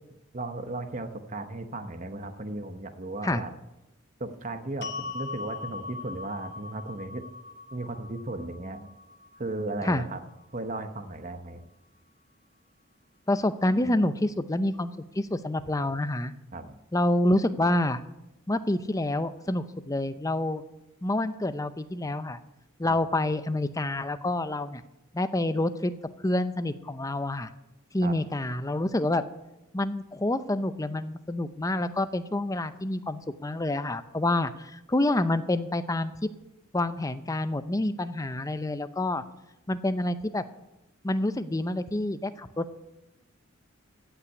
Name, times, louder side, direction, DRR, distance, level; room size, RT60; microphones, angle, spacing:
voice 1, 0.3-3.5 4.2-7.2 7.7-8.9 9.4-10.2 10.5-11.6 16.5-16.8 28.0-28.1, right 2 dB, 35° right, 8 dB, 0.9 m, -35 dB
sound 1, 4.8-11.0, left 4 dB, 50° left, 1.0 m, -41 dB
voice 2, 13.3-14.9 15.2-16.3 16.9-18.0 18.5-20.6 21.0-22.4 22.8-24.8 25.1-25.9 26.2-27.5 27.9-29.2 29.7-36.1 36.7-39.2 39.7-40.4 41.0-42.8, left 1 dB, 15° left, 12 dB, 0.6 m, -27 dB
16.0 x 5.9 x 9.5 m, 0.93 s
head